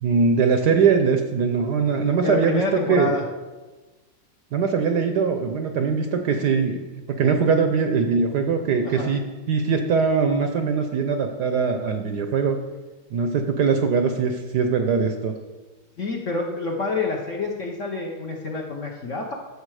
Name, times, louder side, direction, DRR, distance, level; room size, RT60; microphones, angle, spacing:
voice 1, 0.0-3.1 4.5-9.2 9.5-12.6 13.1-15.3, right 5 dB, 65° right, 6 dB, 1.1 m, -21 dB
voice 2, 2.2-3.2 8.8-9.2 16.0-19.3, left 3 dB, 50° left, 0 dB, 1.0 m, -27 dB
12.0 x 7.1 x 4.8 m, 1.2 s
omnidirectional pair, 2.3 m